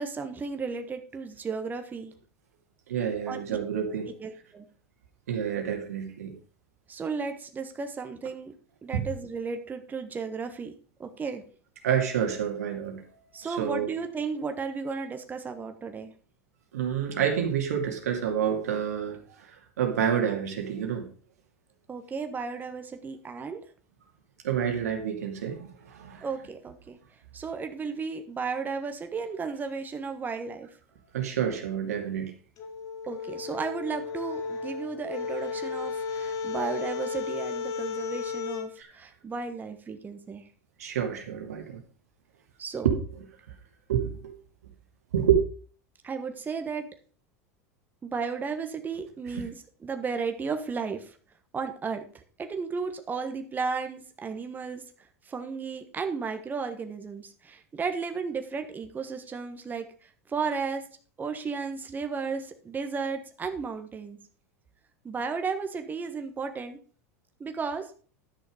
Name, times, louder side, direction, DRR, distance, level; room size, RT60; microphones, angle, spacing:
voice 1, 0.0-2.1 3.3-3.6 4.2-4.6 6.9-8.5 8.8-10.7 11.0-11.4 13.3-16.1 21.9-23.6 26.2-27.0 27.3-30.7 33.1-40.4 42.6-42.9 46.0-46.8 48.0-49.6 49.8-51.2 51.5-54.8 55.2-60.8 61.2-64.2 65.0-66.8 67.4-67.9, right 5 dB, 20° right, 1.4 m, -34 dB
voice 2, 2.9-4.1 5.3-6.3 8.9-9.1 11.8-13.9 16.7-21.1 24.4-26.3 31.1-32.3 38.8-38.9 40.8-41.8 42.8-43.2 43.9-44.4 45.1-45.4 49.3-49.4, right 8 dB, 85° right, 2.4 m, -28 dB
sound 1, 32.6-38.7, left 5 dB, 45° left, 2.3 m, -34 dB
11.0 x 6.4 x 5.0 m
hypercardioid pair, 100°, 8 cm